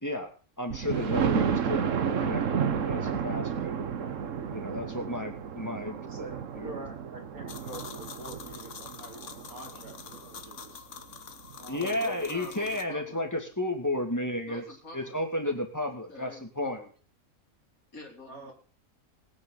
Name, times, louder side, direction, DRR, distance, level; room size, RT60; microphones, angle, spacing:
voice 1, 0.6-3.8 4.5-6.3 6.6-6.7 11.7-14.6 14.9-16.3 16.6-16.8, left 1 dB, 10° left, 3 dB, 2.3 m, -32 dB
Thunder, 0.7-10.4 11.0-11.1 11.5-11.6 11.9-12.0, right 7 dB, 60° right, 1.3 m, -32 dB
voice 2, 5.8-10.8 11.6-12.3 12.6-12.9 18.2-18.5, right 1 dB, 85° right, 1 dB, 3.8 m, -46 dB
sound 1, 7.5-12.8, left 6 dB, 60° left, 1.4 m, -45 dB
voice 3, 12.0-13.2 14.5-15.2 15.4-15.5 16.1-16.9 17.9-18.5, left 2 dB, 75° left, 1 dB, 3.7 m, -47 dB
20.0 x 9.5 x 4.0 m, 0.38 s
omnidirectional pair, 1.5 m